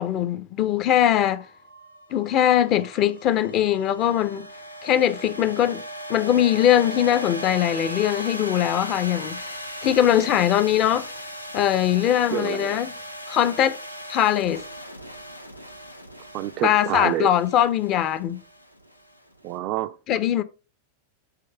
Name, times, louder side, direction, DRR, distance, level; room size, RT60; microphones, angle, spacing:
voice 1, 0.0-1.4 2.1-4.5 4.8-5.8 6.1-11.1 11.5-12.9 13.3-13.8 14.1-14.6 16.6-18.4 20.1-20.4, left 11 dB, 35° left, 0.7 m, -21 dB
sound 1, 1.2-19.5, equal, 85° left, 0.7 m, -38 dB
voice 2, 12.3-12.8 16.3-17.3 19.4-19.9, right 14 dB, 40° right, 0.4 m, -27 dB
7.6 x 3.2 x 5.4 m
figure-of-eight pair, 90°, 0 cm